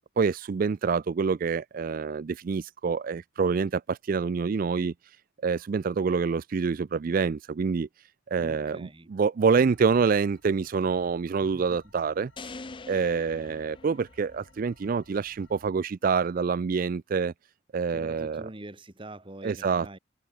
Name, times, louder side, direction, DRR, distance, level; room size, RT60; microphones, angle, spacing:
voice 1, 0.2-3.7 4.1-4.9 5.4-7.9 8.3-12.3 12.9-17.3 17.7-18.4 19.4-20.0, right 5 dB, 45° right, 0.3 m, -26 dB
voice 2, 8.4-9.1 11.5-11.8 17.9-20.0, right 1 dB, 25° right, 1.4 m, -44 dB
sound 1, 9.5-15.7, left 1 dB, 70° left, 4.2 m, -59 dB
sound 2, 12.4-14.6, left 3 dB, 25° left, 0.6 m, -44 dB
head